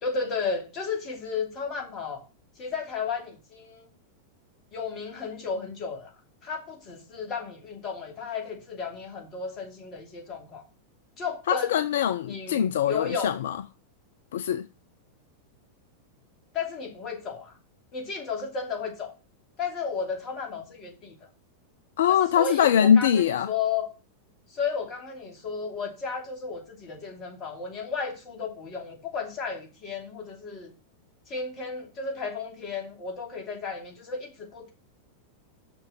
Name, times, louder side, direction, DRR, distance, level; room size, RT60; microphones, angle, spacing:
voice 1, 0.0-2.2 2.6-3.9 4.7-6.1 6.4-10.6 11.2-11.8 12.3-13.3 16.5-17.6 17.9-19.1 19.6-21.3 22.1-23.9 24.5-30.7 31.3-34.7, left 5 dB, 30° left, 2.7 m, -33 dB
voice 2, 11.5-13.6 14.3-14.7 22.0-23.5, left 9 dB, 60° left, 0.4 m, -22 dB
6.2 x 6.1 x 7.2 m
figure-of-eight pair, 90°, 0 cm